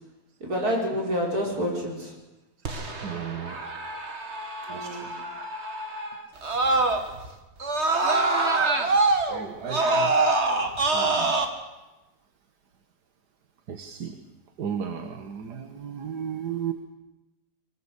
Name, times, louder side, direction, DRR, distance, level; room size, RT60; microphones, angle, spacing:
voice 1, 0.4-2.1 4.7-5.1, equal, 65° right, -1 dB, 6.4 m, -28 dB
Screaming, 2.7-7.3 7.6-11.5, right 3 dB, 45° right, 2.3 m, -25 dB
voice 2, 3.0-3.7 4.7-5.1 9.3-10.2 10.7-11.4 13.7-14.2 14.6-16.7, right 8 dB, 85° right, 7 dB, 2.0 m, -34 dB
23.5 x 20.5 x 8.3 m, 1.0 s
omnidirectional pair, 1.7 m